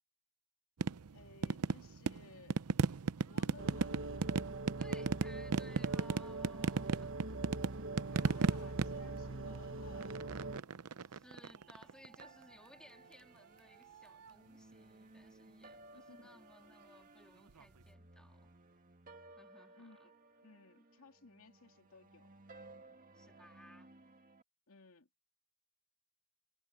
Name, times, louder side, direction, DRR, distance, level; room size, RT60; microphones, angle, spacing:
sound 1, 0.8-12.2 13.9-14.3 17.5-17.6, right 4 dB, 85° right, 0.6 m, -37 dB
voice 1, 1.1-2.6 3.3-4.0 8.2-10.2 15.9-16.4 19.7-20.1 20.4-22.3 24.7-25.1, left 3 dB, 65° left, 2.7 m, -58 dB
sound 2, 3.6-10.6, right 2 dB, 60° right, 1.4 m, -43 dB
voice 2, 4.8-7.1 8.1-8.9 10.7-18.5 19.3-20.1 23.1-23.9, left 1 dB, 5° left, 2.8 m, -61 dB
sound 3, 12.2-24.4, right 2 dB, 40° right, 1.9 m, -59 dB
head